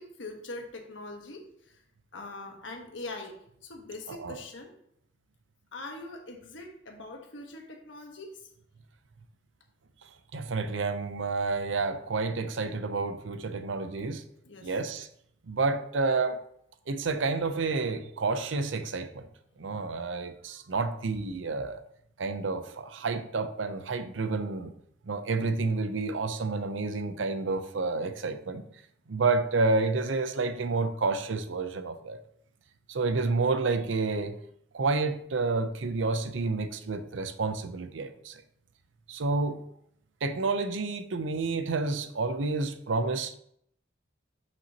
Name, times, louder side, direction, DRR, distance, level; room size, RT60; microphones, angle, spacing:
voice 1, 0.0-1.8 2.1-3.4 3.6-4.7 5.7-8.5 14.4-14.7, left 2 dB, 90° left, 1.3 m, -42 dB
voice 2, 10.3-14.2 14.6-15.1 15.5-16.4 16.9-19.3 19.6-21.8 22.2-24.7 25.1-28.6 29.1-32.2 32.9-34.4 34.7-38.3 39.1-39.6 40.2-43.4, right 3 dB, 90° right, 0.7 m, -29 dB
7.9 x 6.1 x 2.9 m
head